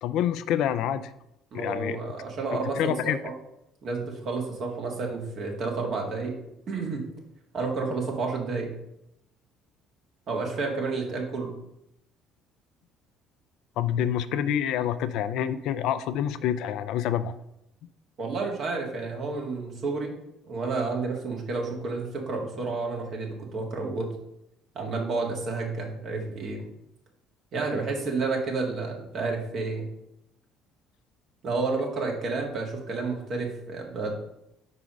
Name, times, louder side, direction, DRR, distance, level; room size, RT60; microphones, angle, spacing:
voice 1, 0.0-1.1 1.5-2.0 2.7-3.2 13.8-17.4, left 10 dB, 65° left, 13 dB, 0.4 m, -27 dB
voice 2, 1.5-3.1 3.8-6.3 6.7-7.1 7.5-8.7 10.3-11.5 18.2-24.1 24.8-26.7 27.5-29.9 31.4-34.1, right 3 dB, 55° right, 0 dB, 1.8 m, -30 dB
4.9 x 4.8 x 5.1 m, 0.82 s
hypercardioid pair, 60°, 0 cm